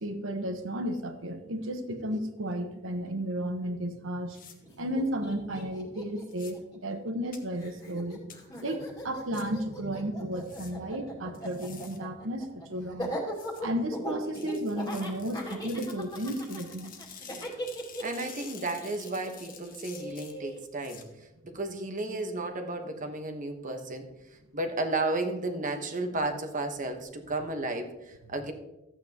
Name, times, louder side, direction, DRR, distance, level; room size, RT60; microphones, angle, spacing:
voice 1, 0.0-4.4 4.7-8.2 8.6-13.1 13.6-16.9, right 1 dB, 80° right, 7 dB, 1.2 m, -33 dB
sound 1, 4.3-4.5 6.3-6.5 7.3-7.4 8.3-8.4 9.3-9.4 10.4-10.7 11.3-12.0 13.3-13.6 14.3-21.0, left 7 dB, 45° left, 1.2 m, -49 dB
Laughter, 4.6-4.7 4.9-7.3 7.6-20.6, equal, 20° left, 2.2 m, -39 dB
voice 2, 18.0-24.1 24.5-28.5, right 2 dB, 40° right, 5 dB, 1.2 m, -33 dB
13.0 x 8.7 x 2.9 m, 0.95 s
head